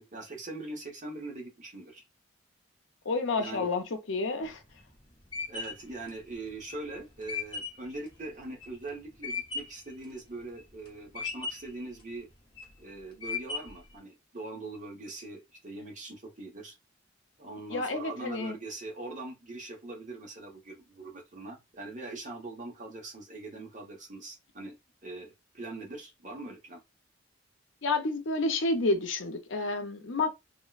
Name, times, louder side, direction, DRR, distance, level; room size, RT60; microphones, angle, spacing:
voice 1, 0.0-2.0 3.4-3.7 5.5-12.3 12.8-16.8 17.4-24.7 25.0-26.8, right 2 dB, 40° right, 1.0 m, -42 dB
voice 2, 3.1-4.6 17.7-18.6 27.8-30.3, left 3 dB, 80° left, 0.6 m, -30 dB
sound 1, 4.4-9.9 10.3-10.9 11.2-11.8 12.3-12.8 13.2-13.9, left 4 dB, 25° left, 0.7 m, -37 dB
3.6 x 2.1 x 2.4 m
head